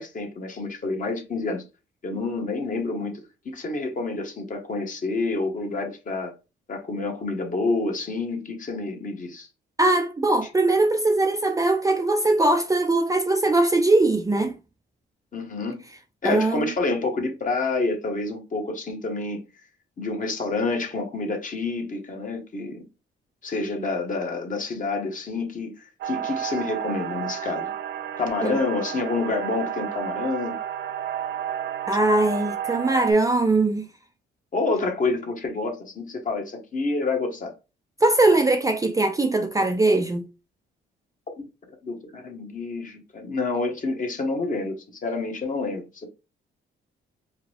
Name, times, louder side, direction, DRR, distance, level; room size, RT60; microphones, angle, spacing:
voice 1, 0.0-1.6 2.0-6.3 6.7-9.5 15.3-15.8 16.2-19.4 20.0-22.8 23.4-27.7 28.2-30.6 34.5-37.5 41.4-41.5 41.8-46.1, left 3 dB, 40° left, 1.4 m, -28 dB
voice 2, 9.8-14.6 16.2-16.7 28.4-28.6 31.9-33.9 38.0-40.3, right 2 dB, 15° right, 0.5 m, -21 dB
sound 1, 26.0-33.1, right 9 dB, 70° right, 0.5 m, -31 dB
4.7 x 2.2 x 3.4 m
cardioid pair, 90°, 20 cm